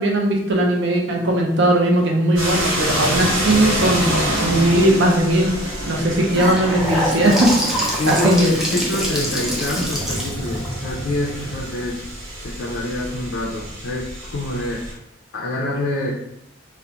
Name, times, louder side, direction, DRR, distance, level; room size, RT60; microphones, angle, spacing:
voice 1, 0.0-5.6 5.9-8.5, right 1 dB, 60° right, 1 dB, 0.5 m, -18 dB
sound 1, 2.4-14.9, equal, 85° right, 1.1 m, -27 dB
Gurgling / Sink (filling or washing) / Bathtub (filling or washing), 6.0-12.0, equal, ahead, 0.4 m, -25 dB
voice 2, 6.2-6.8 8.0-12.0 12.4-15.0 15.3-16.1, left 2 dB, 65° left, -5 dB, 0.4 m, -26 dB
2.4 x 2.1 x 2.8 m, 0.81 s
head